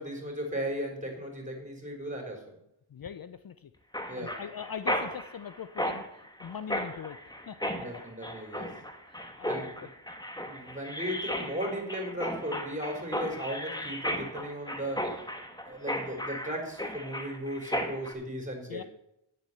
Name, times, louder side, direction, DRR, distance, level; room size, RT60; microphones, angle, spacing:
voice 1, 0.0-2.6 4.1-4.4 7.8-8.8 9.5-9.9 10.5-15.0 15.5-18.9, equal, 15° right, 2 dB, 4.2 m, -36 dB
voice 2, 2.9-3.7 4.2-7.2 7.5-7.7 9.1-9.9 18.7-18.8, left 7 dB, 50° left, 12 dB, 0.6 m, -41 dB
Mechanisms, 3.9-18.1, equal, 10° left, 1.5 m, -35 dB
9.4 x 7.6 x 6.8 m, 0.80 s
cardioid pair, 50°, 45 cm